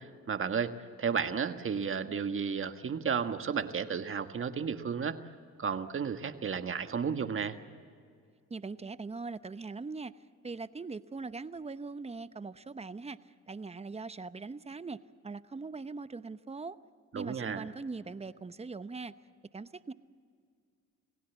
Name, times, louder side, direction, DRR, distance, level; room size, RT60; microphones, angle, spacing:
voice 1, 0.0-5.2 5.6-7.6 17.1-17.7, right 6 dB, 45° right, 8 dB, 1.5 m, -33 dB
voice 2, 8.5-10.1 10.4-13.2 13.5-16.8 17.1-19.1 19.5-19.9, right 4 dB, 20° right, 13 dB, 0.8 m, -41 dB
28.0 x 17.0 x 8.2 m, 2.2 s
cardioid pair, 90°, 30 cm